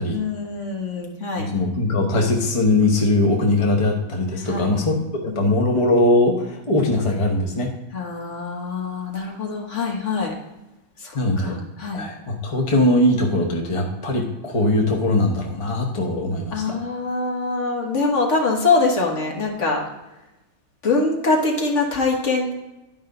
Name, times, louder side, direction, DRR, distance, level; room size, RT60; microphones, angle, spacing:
voice 1, 0.1-1.5 4.4-4.7 5.3-5.5 7.9-10.3 11.0-12.1 16.5-19.8 20.8-22.5, left 3 dB, 45° left, 0 dB, 1.6 m, -24 dB
voice 2, 1.4-7.7 11.1-11.6 11.9-16.8, left 2 dB, 25° left, 1 dB, 0.7 m, -20 dB
11.0 x 5.3 x 3.8 m, 0.98 s
omnidirectional pair, 1.9 m